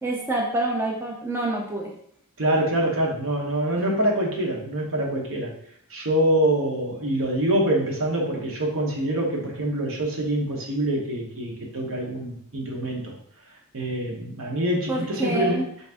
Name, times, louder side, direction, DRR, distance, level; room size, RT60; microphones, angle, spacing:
voice 1, 0.0-1.9 14.9-15.7, right 2 dB, 10° right, -1 dB, 0.4 m, -27 dB
voice 2, 2.4-5.5 5.9-13.1 13.7-15.6, right 1 dB, 65° right, -1 dB, 1.0 m, -25 dB
4.0 x 2.5 x 3.4 m, 0.66 s
head